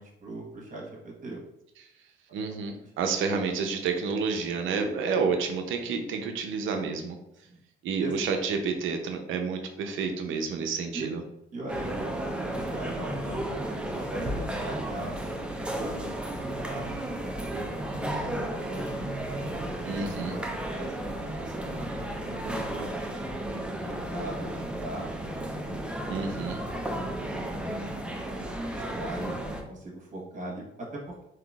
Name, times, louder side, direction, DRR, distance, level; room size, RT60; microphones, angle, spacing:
voice 1, 0.0-1.4 2.8-2.9 7.4-7.6 8.0-8.1 10.9-11.1 11.5-15.2 15.7-19.0 19.6-20.0 20.3-23.1 23.9-25.1 25.5-26.6 27.2-28.0 28.4-29.4 29.7-31.3, right 2 dB, 40° right, -2 dB, 1.2 m, -40 dB
voice 2, 2.3-7.2 7.8-11.2 19.8-20.3 26.1-26.6, right 5 dB, 80° right, 5 dB, 0.6 m, -29 dB
sound 1, 11.7-29.6, right 1 dB, 5° right, 0.5 m, -33 dB
3.8 x 2.8 x 2.3 m, 0.84 s
cardioid pair, 90°, 20 cm